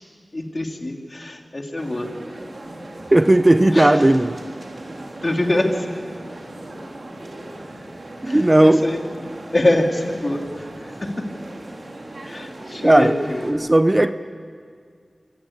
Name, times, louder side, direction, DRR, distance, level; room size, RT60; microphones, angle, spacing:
voice 1, 0.3-2.1 3.7-4.1 5.2-5.9 8.2-9.0 9.5-11.3 12.2-13.5, left 1 dB, 40° left, 2.9 m, -24 dB
sound 1, 1.8-13.5, right 1 dB, 60° right, 3.7 m, -37 dB
voice 2, 3.1-4.4 8.2-8.9 12.8-13.2 13.4-14.1, right 1 dB, 25° right, 0.7 m, -15 dB
25.0 x 18.5 x 8.7 m
wide cardioid pair, 60°, 0 cm